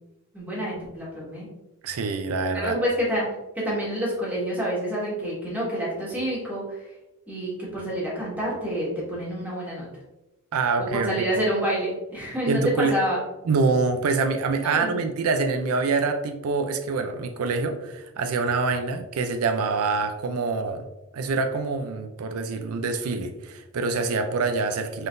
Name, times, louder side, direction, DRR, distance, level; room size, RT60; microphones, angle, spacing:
voice 1, 0.3-1.5 2.5-3.2 3.5-6.8 7.3-9.8 10.8-13.2 14.5-15.0, equal, 10° right, -6 dB, 1.6 m, -28 dB
voice 2, 1.8-2.8 10.5-11.3 12.5-13.0 13.5-20.9 21.1-25.1, right 4 dB, 80° right, 6 dB, 0.4 m, -25 dB
5.5 x 3.8 x 2.6 m, 1.0 s
head